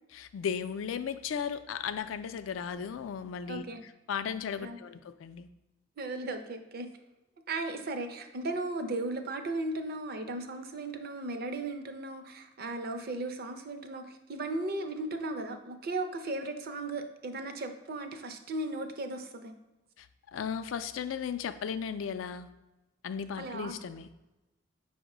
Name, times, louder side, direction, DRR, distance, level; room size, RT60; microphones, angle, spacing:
voice 1, 0.1-3.6 4.1-5.5 20.0-20.1 20.3-22.5 23.0-24.1, left 7 dB, 85° left, 11 dB, 0.3 m, -35 dB
voice 2, 3.5-3.8 4.6-4.8 6.0-6.9 7.5-19.5 23.4-23.7, right 2 dB, 50° right, 7 dB, 0.5 m, -36 dB
5.2 x 2.1 x 4.8 m, 1.0 s
head